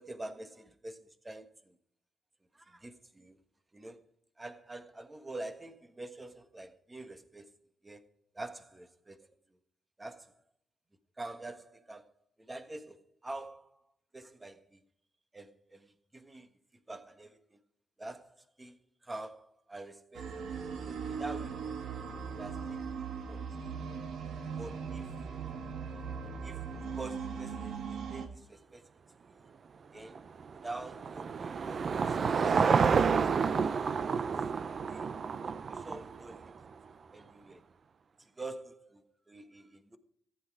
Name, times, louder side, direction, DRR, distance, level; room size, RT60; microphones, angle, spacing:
voice 1, 0.0-1.8 2.5-3.4 3.7-4.0 4.4-7.5 7.8-8.0 8.3-9.3 10.0-10.4 11.2-12.1 12.4-13.8 14.1-14.8 15.3-16.5 16.9-17.6 18.0-20.3 20.9-22.0 22.4-24.0 24.6-25.1 26.4-28.9 29.3-29.5 29.9-30.2 30.5-32.7 33.1-33.8 34.9-35.1 35.4-36.6 37.1-37.6 38.2-40.0, right 2 dB, 15° right, 1.4 m, -46 dB
sound 1, 20.1-28.3, right 6 dB, 65° right, 1.9 m, -39 dB
Car passing by / Engine, 30.1-36.6, right 5 dB, 45° right, 0.6 m, -29 dB
14.5 x 9.9 x 4.8 m
cardioid pair, 90°, 0 cm